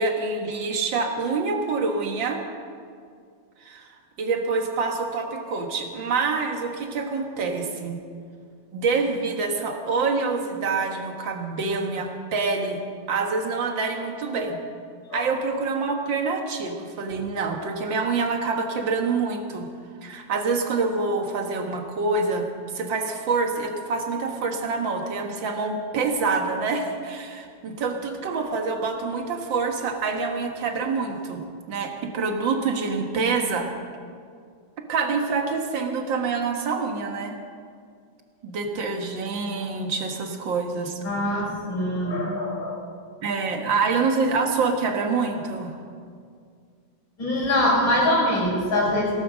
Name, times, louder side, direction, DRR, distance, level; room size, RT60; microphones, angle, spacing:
voice 1, 0.0-2.4 3.6-3.9 4.2-8.0 8.7-12.8 13.1-14.6 15.1-19.7 20.0-22.5 22.7-31.4 31.7-33.7 34.9-37.3 38.4-41.0 43.2-45.7, right 4 dB, 70° right, 3 dB, 2.2 m, -26 dB
voice 2, 41.0-42.8 47.2-49.1, left 1 dB, 75° left, -5 dB, 6.0 m, -23 dB
18.5 x 11.5 x 6.4 m, 2.2 s
omnidirectional pair, 2.1 m